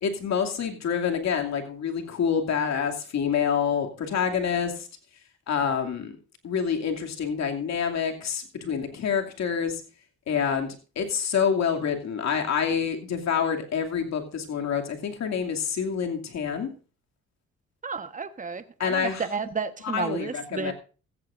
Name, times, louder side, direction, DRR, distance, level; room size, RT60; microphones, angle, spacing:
voice 1, 0.0-4.9 5.5-6.1 6.4-9.8 10.3-16.7 18.8-19.3 19.8-20.7, left 7 dB, 60° left, 2.6 m, -27 dB
voice 2, 17.8-20.7, right 5 dB, 25° right, 1.3 m, -32 dB
16.0 x 14.5 x 2.6 m
cardioid pair, 90°, 30 cm